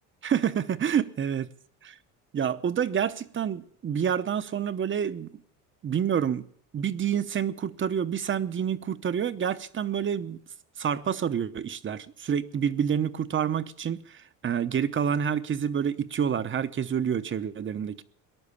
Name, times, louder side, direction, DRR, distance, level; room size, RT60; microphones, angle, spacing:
voice 1, 0.2-1.5 1.8-1.9 2.3-5.3 5.8-6.5 6.7-10.4 10.8-18.0, right 8 dB, 30° right, 0.8 m, -28 dB
19.5 x 11.0 x 6.9 m
supercardioid pair, 100°, 38 cm